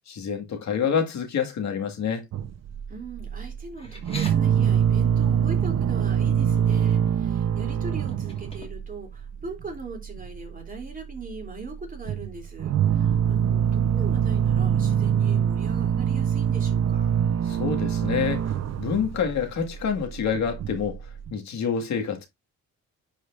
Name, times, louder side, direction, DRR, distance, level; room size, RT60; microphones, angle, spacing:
voice 1, 0.1-2.3 17.5-18.5 18.8-21.0 21.3-22.3, left 7 dB, 65° left, 2.1 m, -27 dB
sound 1, 2.3-3.7 3.9-8.9 9.2-9.6 9.9-10.5 10.7-11.5 11.7-21.3, right 8 dB, 60° right, 0.9 m, -24 dB
voice 2, 2.9-17.1, right 3 dB, 30° right, 3.3 m, -40 dB
sound 2, 3.8-4.3 6.1-6.2 6.6-7.0 8.1-9.0, left 2 dB, 20° left, 2.5 m, -42 dB
10.5 x 4.9 x 2.6 m
cardioid pair, 90°, 30 cm